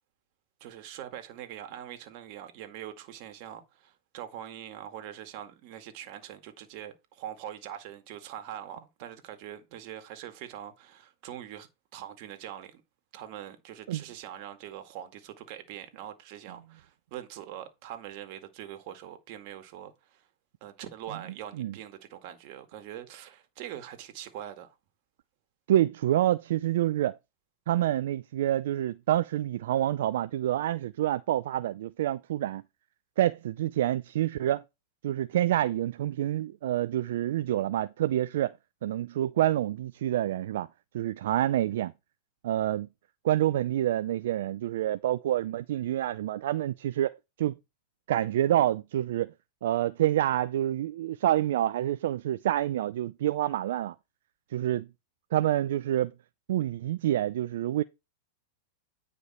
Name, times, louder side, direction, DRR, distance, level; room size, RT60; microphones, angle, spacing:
voice 1, 0.6-12.8 13.1-20.3 20.6-24.8, right 11 dB, 50° right, 1.9 m, -43 dB
voice 2, 25.7-27.2 27.7-32.6 33.2-34.6 35.0-38.5 38.8-40.7 40.9-41.9 42.4-42.9 43.2-47.5 48.1-49.3 49.6-53.9 54.5-54.9 55.3-56.1 56.5-57.8, right 12 dB, 70° right, 0.4 m, -27 dB
9.6 x 5.1 x 4.3 m
hypercardioid pair, 115°, 0 cm